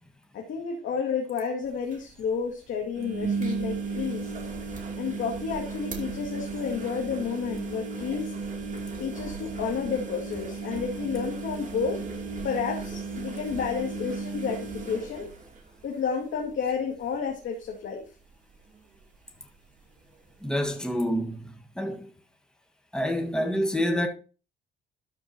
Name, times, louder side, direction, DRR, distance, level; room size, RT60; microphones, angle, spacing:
voice 1, 0.3-4.3 5.0-8.3 9.0-12.0 12.4-15.3 15.8-18.0, left 6 dB, 75° left, 2.2 m, -31 dB
sound 1, 1.7-1.8 1.9-2.0 2.9-16.0 16.4-16.8 17.1-17.2 19.0-19.1, right 4 dB, 40° right, 2.7 m, -35 dB
voice 2, 20.4-22.1 22.9-24.1, equal, 5° left, 1.7 m, -28 dB
12.5 x 4.6 x 4.4 m
cardioid pair, 90°, 20 cm